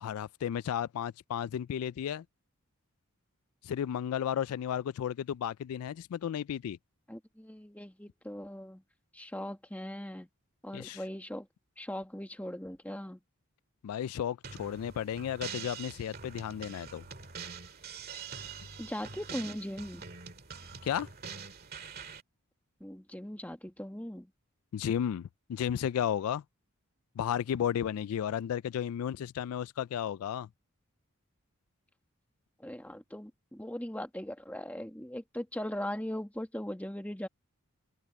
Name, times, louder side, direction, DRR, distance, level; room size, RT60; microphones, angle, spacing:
voice 1, 0.0-2.2 3.6-6.8 10.7-11.0 13.8-17.0 20.8-21.1 24.7-26.4 27.2-30.5, left 9 dB, 80° left, 0.3 m, -33 dB
voice 2, 7.1-8.8 9.1-10.3 10.6-11.5 11.8-13.2 18.8-20.1 22.8-24.3 32.6-37.3, left 1 dB, 5° left, 1.6 m, -39 dB
sound 1, 14.4-22.2, right 6 dB, 45° right, 2.1 m, -45 dB
open air
head